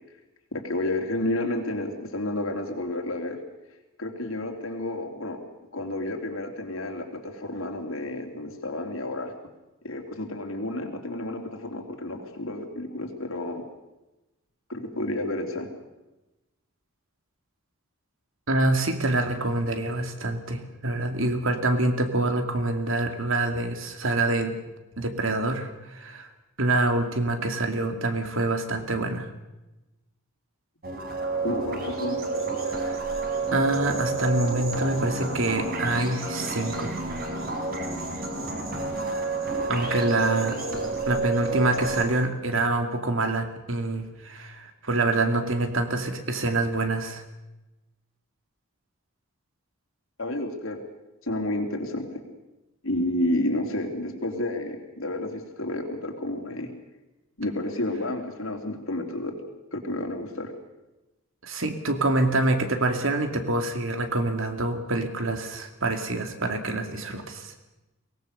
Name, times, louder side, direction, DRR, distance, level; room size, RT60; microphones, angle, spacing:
voice 1, 0.5-3.4 4.0-5.4 5.7-9.3 9.8-13.6 14.7-15.7 31.4-32.2 50.2-50.8 51.2-52.1 52.8-56.7 57.4-59.3 59.7-60.5, left 1 dB, 70° left, 3 dB, 3.5 m, -30 dB
voice 2, 18.5-24.6 25.0-26.3 26.6-29.3 32.7-33.0 33.5-37.0 39.7-40.6 41.1-47.2 61.4-67.5, right 2 dB, 65° right, 6 dB, 2.5 m, -26 dB
sound 1, 30.8-42.0, right 3 dB, 45° right, 4.6 m, -30 dB
23.5 x 18.5 x 6.8 m, 1.0 s
head